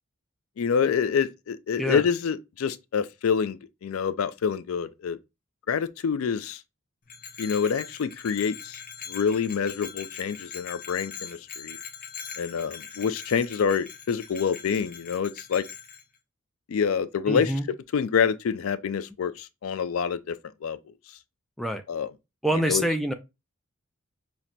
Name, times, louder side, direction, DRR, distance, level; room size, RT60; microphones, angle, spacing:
voice 1, 0.6-5.2 5.7-6.6 7.4-8.8 9.1-11.8 12.4-15.6 16.7-17.5 17.9-20.4 20.6-20.8 21.9-22.1 22.7-22.8, left 6 dB, 75° left, 0.4 m, -27 dB
Bell, 7.1-16.0, left 7 dB, 40° left, 0.7 m, -42 dB
voice 2, 17.3-17.7 21.6-21.8 22.4-23.1, equal, ahead, 0.3 m, -26 dB
5.7 x 2.1 x 2.5 m
head